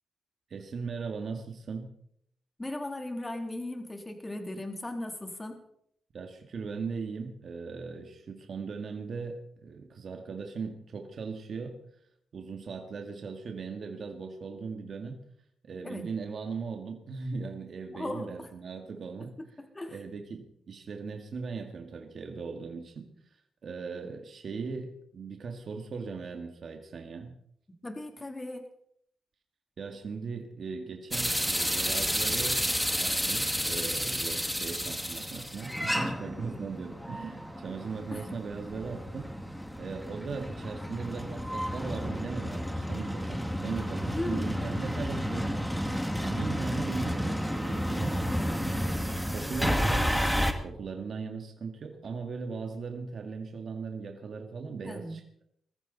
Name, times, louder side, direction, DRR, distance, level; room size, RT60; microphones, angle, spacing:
voice 1, 0.5-1.9 6.1-11.8 12.3-15.3 15.6-19.4 19.9-27.4 29.8-32.6 33.0-39.3 39.8-45.6 46.2-48.2 48.8-55.2, right 5 dB, 60° right, 4 dB, 2.1 m, -38 dB
voice 2, 2.6-5.6 15.8-16.0 17.9-18.5 19.4-20.0 27.8-28.6 38.1-38.4 44.1-44.6 48.3-48.5 54.8-55.2, left 1 dB, 20° left, 4 dB, 3.3 m, -37 dB
sound 1, 31.1-50.5, equal, ahead, 2.1 m, -31 dB
21.5 x 14.5 x 4.1 m, 0.69 s
cardioid pair, 85°, 0 cm